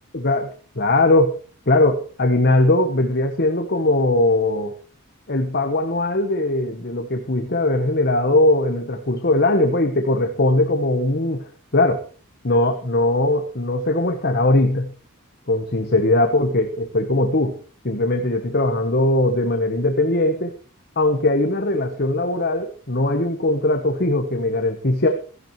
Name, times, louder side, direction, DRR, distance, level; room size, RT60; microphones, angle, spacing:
voice 1, 0.1-0.5 0.8-1.3 1.7-4.8 5.3-12.0 12.4-14.9 15.5-17.6 17.8-20.5 21.0-25.1, left 2 dB, 50° left, 5 dB, 1.2 m, -20 dB
16.0 x 13.5 x 3.2 m, 0.38 s
head